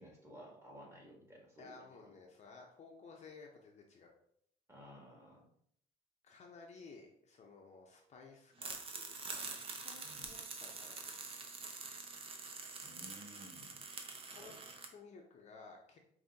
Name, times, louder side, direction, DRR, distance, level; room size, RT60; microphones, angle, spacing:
voice 1, 0.0-1.9 4.7-5.5 10.0-10.3 12.8-13.8 14.3-14.6, equal, 15° right, -2 dB, 1.5 m, -55 dB
voice 2, 1.6-4.1 6.2-11.1 14.2-14.5 14.8-16.0, left 4 dB, 40° left, 1 dB, 0.6 m, -56 dB
sound 1, 8.6-14.9, right 4 dB, 35° right, 0.6 m, -46 dB
5.1 x 2.7 x 2.7 m, 0.68 s
cardioid pair, 110°, 17 cm